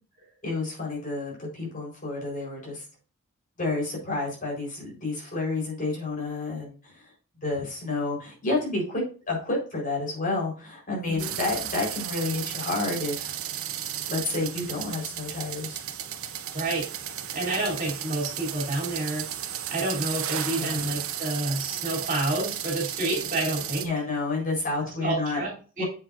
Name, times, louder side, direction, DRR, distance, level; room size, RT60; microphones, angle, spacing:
voice 1, 0.4-2.8 3.6-7.1 7.4-13.3 14.1-15.8 20.5-20.9 23.8-25.4 25.8-25.9, left 3 dB, 40° left, -2 dB, 4.2 m, -30 dB
sound 1, 11.2-23.9, right 10 dB, 85° right, 0.9 m, -34 dB
voice 2, 16.5-16.9 17.3-19.2 19.7-23.8 25.0-25.8, right 2 dB, 40° right, -3 dB, 3.2 m, -29 dB
8.0 x 7.4 x 2.6 m, 0.38 s
head